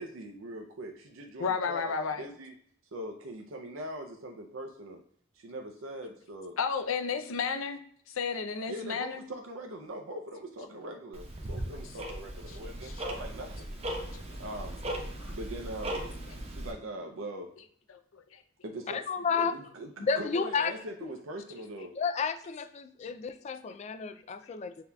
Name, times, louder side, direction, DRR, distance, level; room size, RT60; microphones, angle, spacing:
voice 1, 0.0-2.5 2.9-5.0 5.3-6.6 8.7-13.7 14.4-14.9 15.3-16.2 16.5-17.5 18.6-21.9, right 1 dB, 85° right, 3 dB, 0.5 m, -41 dB
voice 2, 1.4-2.3 6.6-7.8 8.1-9.2 12.5-12.6 12.8-13.0 14.1-14.4 15.2-15.3 18.1-18.4, left 5 dB, 90° left, 8 dB, 0.5 m, -32 dB
Tick-tock, 11.1-16.7, right 1 dB, 30° right, 0.7 m, -38 dB
voice 3, 18.9-19.5 20.0-20.7 22.0-24.8, left 5 dB, 35° left, 12 dB, 0.3 m, -31 dB
6.9 x 2.7 x 2.3 m, 0.64 s
head